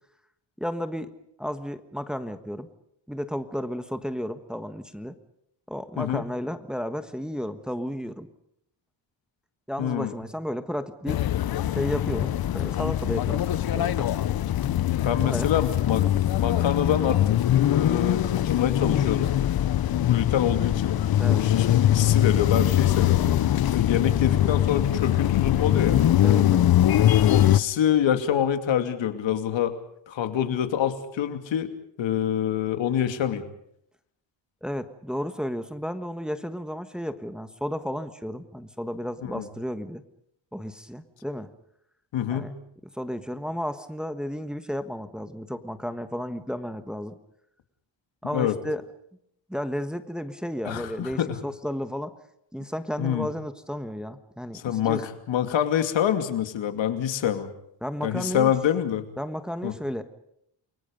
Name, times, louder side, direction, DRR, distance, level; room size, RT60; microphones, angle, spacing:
voice 1, 0.6-1.1 1.4-2.7 3.1-5.2 5.7-8.3 9.7-11.2 11.7-14.1 15.2-15.5 21.2-21.4 26.2-26.7 34.6-40.0 40.5-41.5 42.3-42.5 42.9-47.2 48.2-48.8 49.5-52.1 52.5-55.0 57.8-58.5 59.2-60.0, equal, ahead, 9 dB, 1.4 m, -33 dB
voice 2, 9.8-10.1 14.7-16.1 16.4-17.2 17.6-19.3 20.0-21.0 21.3-23.2 23.7-26.0 27.3-29.7 30.1-31.7 32.0-33.4 39.2-39.5 42.1-42.5 48.3-48.5 50.6-51.4 53.0-53.3 54.5-57.5 58.0-59.0 59.6-59.7, left 9 dB, 85° left, 8 dB, 2.7 m, -26 dB
sound 1, 11.1-27.6, left 12 dB, 55° left, 0.8 m, -22 dB
29.5 x 23.0 x 5.3 m, 0.74 s
cardioid pair, 135°, 44 cm